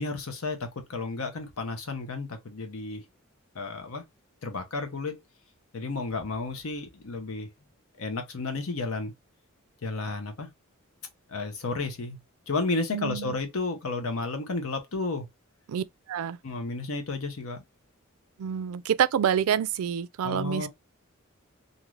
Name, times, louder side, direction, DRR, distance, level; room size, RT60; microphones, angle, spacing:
voice 1, 0.0-3.0 3.5-4.0 4.4-5.2 5.7-7.5 8.0-9.1 9.8-10.5 11.3-12.2 12.5-15.3 16.4-17.6 20.2-20.7, left 3 dB, 75° left, 0.8 m, -32 dB
voice 2, 12.9-13.4 15.7-16.4 18.4-20.7, right 9 dB, 80° right, 0.3 m, -27 dB
2.6 x 2.5 x 3.1 m
head